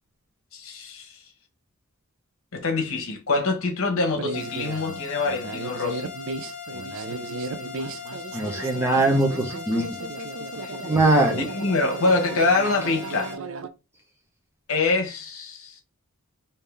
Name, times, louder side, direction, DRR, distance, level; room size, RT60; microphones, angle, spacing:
voice 1, 0.5-1.2 2.5-6.1 10.6-10.9 11.3-13.3 14.7-15.8, left 3 dB, 65° left, 1.1 m, -25 dB
sound 1, 4.2-13.7, right 3 dB, 60° right, 0.5 m, -35 dB
sound 2, 4.3-13.3, left 6 dB, 35° left, 1.1 m, -39 dB
voice 2, 8.3-10.0 10.8-11.5, right 2 dB, 10° right, 0.6 m, -21 dB
3.6 x 2.8 x 3.2 m
head